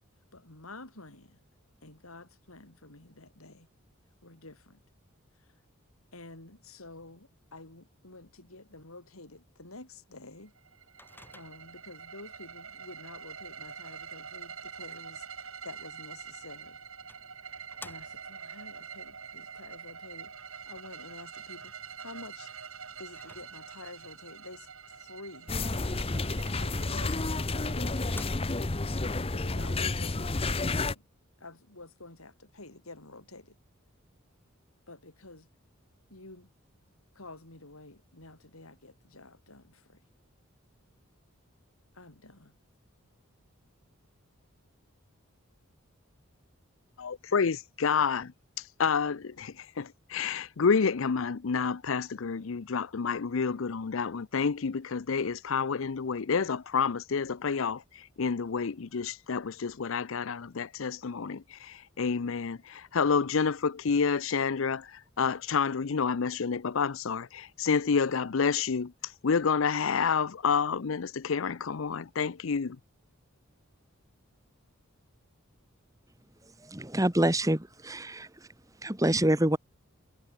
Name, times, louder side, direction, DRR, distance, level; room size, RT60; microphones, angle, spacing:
voice 1, 0.3-1.4 1.8-3.7 4.2-4.8 5.4-5.5 6.1-10.5 11.3-15.3 15.6-16.8 17.8-21.7 22.0-22.5 23.0-25.6 26.4-28.7 29.3-31.0 31.4-33.6 34.9-35.5 36.1-36.5 37.1-40.0 41.9-42.6, left 2 dB, 85° left, 5.5 m, -49 dB
sound 1, 10.6-28.4, right 6 dB, 75° right, 7.2 m, -46 dB
Microwave oven, 11.0-11.9 16.2-16.3 17.1-18.5 23.1-24.0 27.1-27.2 27.6-27.7 28.0-28.8, left 2 dB, 10° left, 4.3 m, -51 dB
sound 2, 25.5-31.0, left 2 dB, 25° left, 0.9 m, -30 dB
voice 2, 47.0-48.3 48.6-72.8, left 5 dB, 70° left, 0.6 m, -29 dB
voice 3, 76.6-78.3 78.8-79.6, right 1 dB, 15° right, 1.8 m, -26 dB
head